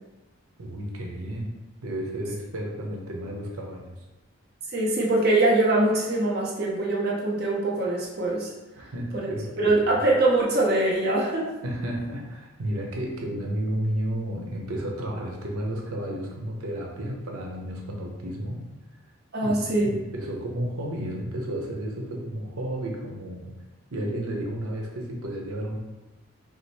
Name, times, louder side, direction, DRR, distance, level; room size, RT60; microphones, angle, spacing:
voice 1, 0.6-1.5 1.8-3.9 8.8-9.8 11.6-18.7 19.4-23.5 23.9-25.8, right 1 dB, 90° right, 0 dB, 0.9 m, -32 dB
voice 2, 4.7-8.5 9.1-9.3 9.6-11.5 19.3-19.9, right 2 dB, 45° right, -3 dB, 0.9 m, -23 dB
5.0 x 2.1 x 4.2 m, 1.1 s
head